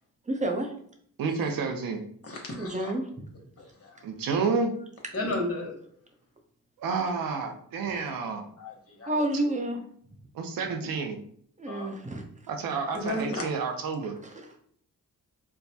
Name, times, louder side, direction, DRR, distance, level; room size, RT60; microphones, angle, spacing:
voice 1, 0.3-0.7 2.6-3.1 5.2-5.4 9.1-9.8 11.6-12.2 14.2-14.5, right 1 dB, 20° right, 3 dB, 0.8 m, -29 dB
voice 2, 1.2-2.0 4.0-4.7 6.8-8.5 10.3-11.2 12.5-14.1, right 5 dB, 85° right, 4 dB, 0.7 m, -30 dB
voice 3, 2.2-2.9 3.6-3.9 5.1-5.8 8.6-8.7 9.0-9.1 11.7-11.9 12.9-13.4, left 1 dB, 45° left, 0 dB, 1.2 m, -33 dB
4.5 x 2.2 x 2.7 m, 0.62 s
cardioid pair, 70°, 33 cm